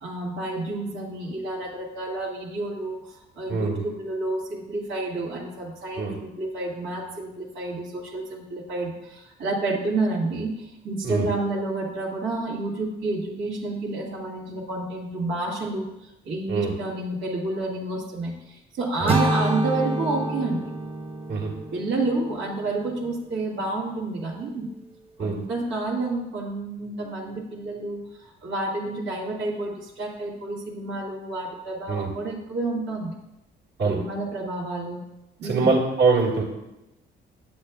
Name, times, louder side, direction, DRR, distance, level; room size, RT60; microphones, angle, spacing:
voice 1, 0.0-20.7 21.7-24.7 25.2-33.1 33.8-35.0 35.4-35.8, right 2 dB, 90° right, -5 dB, 1.5 m, -30 dB
voice 2, 3.5-3.8 6.0-6.2 11.0-11.3 16.5-16.7 19.0-19.1 21.3-21.5 25.2-25.4 31.9-32.1 33.8-34.0 35.4-36.4, right 4 dB, 60° right, -3 dB, 1.7 m, -23 dB
sound 1, 19.1-23.1, right 2 dB, 30° right, 0.6 m, -28 dB
8.6 x 7.1 x 2.3 m, 0.93 s
cardioid pair, 90°, 20 cm